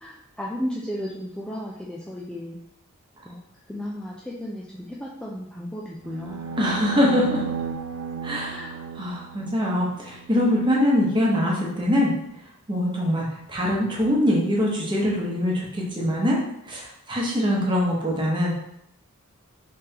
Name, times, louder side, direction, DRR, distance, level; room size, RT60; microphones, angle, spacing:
voice 1, 0.0-2.6 3.2-3.4 3.7-6.4 8.5-8.7, equal, 5° left, -5 dB, 0.3 m, -34 dB
sound 1, 6.0-10.3, right 5 dB, 80° right, 0.4 m, -34 dB
voice 2, 6.6-7.4 8.2-8.6 9.0-12.1 12.7-16.4 16.7-18.5, left 1 dB, 20° right, -3 dB, 0.9 m, -23 dB
3.5 x 3.3 x 2.8 m, 0.76 s
head